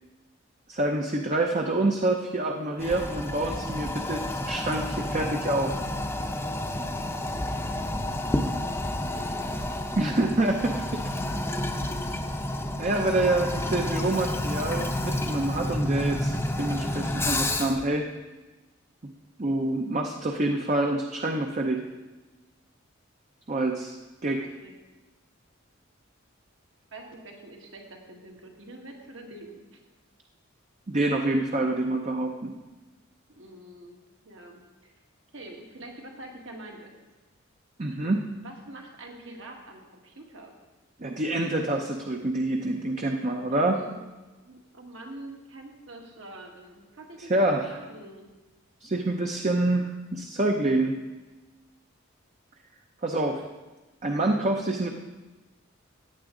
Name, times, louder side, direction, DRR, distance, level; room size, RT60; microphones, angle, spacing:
voice 1, 0.7-5.7 10.0-11.1 12.8-18.0 19.4-21.8 23.5-24.0 24.2-24.4 30.9-32.5 37.8-38.3 41.0-43.8 47.3-47.7 48.8-51.0 53.0-53.4 54.0-54.9, right 2 dB, 35° right, 2 dB, 0.6 m, -27 dB
Toilet flush, 2.8-17.9, left 1 dB, 10° left, 0.7 m, -30 dB
voice 2, 9.1-9.4 12.8-13.0 24.6-24.7 26.9-29.8 33.3-34.9 35.3-36.9 38.4-40.5 43.3-44.1 44.4-48.3, right 1 dB, 70° right, 1 dB, 1.7 m, -45 dB
15.0 x 9.2 x 3.8 m, 1.2 s
head